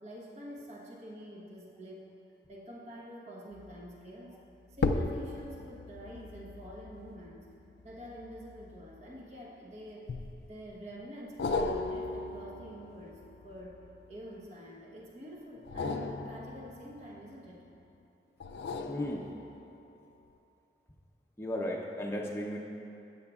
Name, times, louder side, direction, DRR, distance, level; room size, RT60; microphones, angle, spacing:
voice 1, 0.0-2.0 2.5-4.4 4.8-7.5 7.8-10.1 10.5-13.8 14.1-17.6, equal, 40° right, -3 dB, 1.1 m, -47 dB
sound 1, 3.5-3.9 4.7-9.4 10.1-10.7 11.4-14.4 15.6-17.7 18.4-19.8 20.3-20.4, left 3 dB, 70° left, 0.4 m, -37 dB
voice 2, 18.9-19.3 21.4-22.6, left 1 dB, 15° left, -2 dB, 0.6 m, -35 dB
12.0 x 8.8 x 2.4 m, 2.7 s
head